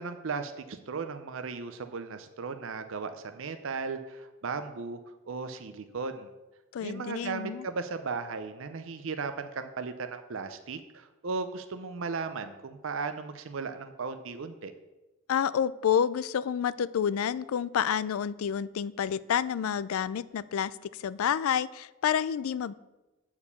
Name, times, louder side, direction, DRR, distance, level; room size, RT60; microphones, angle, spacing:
voice 1, 0.0-5.0 5.2-6.3 6.8-14.7, right 4 dB, 65° right, 8 dB, 0.5 m, -36 dB
voice 2, 6.7-7.7 15.3-22.7, left 8 dB, 75° left, 18 dB, 0.3 m, -29 dB
8.6 x 4.8 x 6.9 m, 1.1 s
head